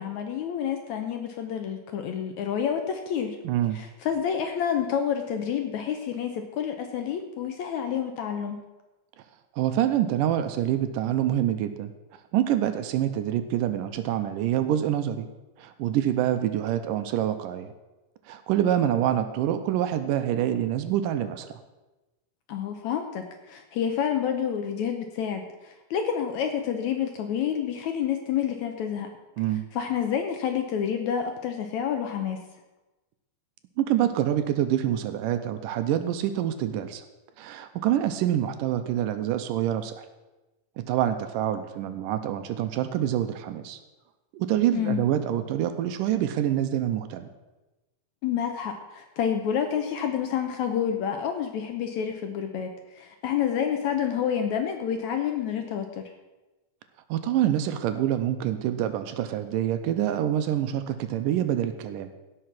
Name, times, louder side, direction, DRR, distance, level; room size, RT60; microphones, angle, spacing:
voice 1, 0.0-3.4 3.7-8.6 22.5-29.1 29.7-32.4 44.7-45.0 48.2-52.7 53.0-56.1, left 8 dB, 70° left, 5 dB, 1.8 m, -29 dB
voice 2, 3.4-3.8 9.6-11.9 12.3-15.3 15.6-17.7 18.3-21.6 29.4-29.7 33.8-37.0 37.4-40.1 40.8-43.8 44.3-47.3 57.1-62.1, right 11 dB, 80° right, 9 dB, 2.2 m, -26 dB
16.5 x 5.7 x 6.0 m, 1.1 s
omnidirectional pair, 4.1 m